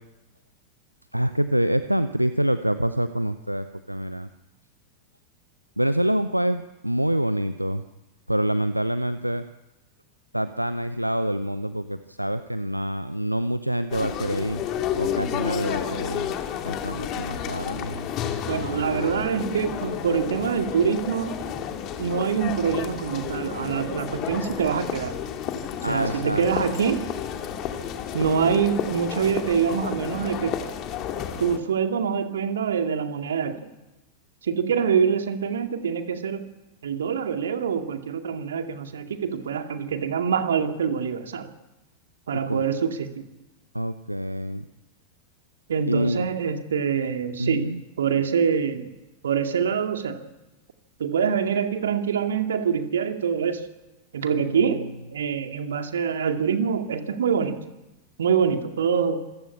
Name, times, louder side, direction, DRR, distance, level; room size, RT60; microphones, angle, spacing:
voice 1, 1.1-4.3 5.8-7.8 8.3-9.4 10.3-14.6 15.0-16.3 16.6-18.1 18.7-19.2 25.8-26.7 42.3-42.6 43.7-44.6 45.9-46.3 47.4-47.8 54.3-54.8, equal, 90° right, 12 dB, 0.7 m, -26 dB
sound 1, 13.9-31.6, left 9 dB, 35° left, 2.6 m, -31 dB
voice 2, 18.5-21.4 22.0-25.1 25.9-27.0 28.1-30.6 31.4-33.6 34.4-36.4 36.8-41.5 42.3-43.2 45.7-47.7 48.0-48.9 49.2-50.2 51.0-53.7 54.1-54.8 55.1-57.7 58.2-59.2, right 7 dB, 65° right, 6 dB, 2.2 m, -25 dB
26.5 x 16.0 x 8.6 m, 1.1 s
figure-of-eight pair, 90°, 0 cm